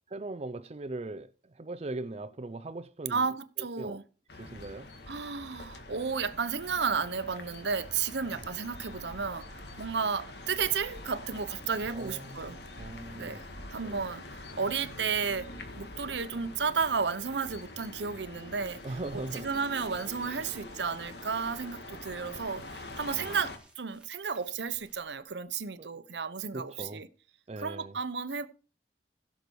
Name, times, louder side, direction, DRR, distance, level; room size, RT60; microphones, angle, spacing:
voice 1, 0.1-4.0 4.3-4.9 8.3-8.5 11.9-13.4 13.8-14.2 18.8-19.5 20.4-20.5 23.1-23.5 25.8-25.9 26.5-27.0 27.5-28.0, right 2 dB, 35° right, 0.5 m, -40 dB
voice 2, 3.1-4.0 5.1-12.6 13.1-13.4 13.7-15.5 15.8-18.8 19.1-27.1 27.6-28.5, right 5 dB, 80° right, 0.9 m, -33 dB
sound 1, 4.3-23.6, left 2 dB, 65° left, 1.8 m, -45 dB
sound 2, 18.5-26.2, right 1 dB, 5° right, 2.9 m, -61 dB
16.5 x 6.8 x 4.7 m
head